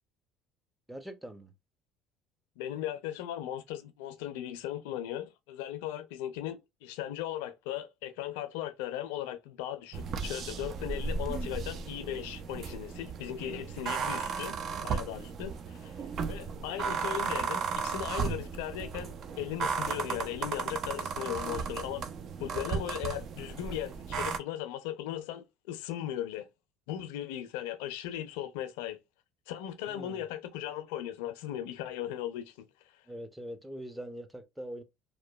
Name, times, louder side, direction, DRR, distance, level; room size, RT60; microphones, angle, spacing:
voice 1, 0.9-1.5 29.9-30.2 33.1-34.8, equal, 5° right, 0.6 m, -43 dB
voice 2, 2.6-14.5 14.8-15.9 16.3-22.1 22.4-26.5 26.9-29.0 29.5-33.0, left 12 dB, 85° left, 0.4 m, -38 dB
sound 1, 9.9-24.4, right 5 dB, 50° right, 0.4 m, -35 dB
2.9 x 2.1 x 2.2 m
supercardioid pair, 90°, 0 cm